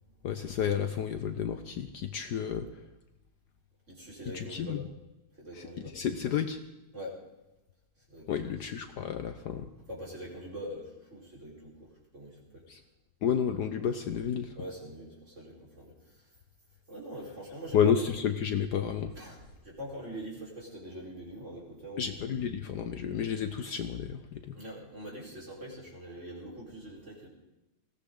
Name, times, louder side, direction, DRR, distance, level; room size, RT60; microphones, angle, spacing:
voice 1, 0.2-2.7 4.3-4.8 5.5-5.7 5.9-6.6 8.3-9.7 12.7-12.8 13.2-14.6 17.7-19.1 22.0-24.6, left 8 dB, 65° left, 8 dB, 1.2 m, -31 dB
voice 2, 3.9-4.8 5.3-6.0 6.9-7.2 8.1-8.5 9.9-12.6 14.6-16.3 16.9-18.0 19.1-22.1 24.5-27.3, right 1 dB, 35° right, -3 dB, 4.8 m, -44 dB
20.0 x 16.5 x 3.8 m, 0.99 s
omnidirectional pair, 2.1 m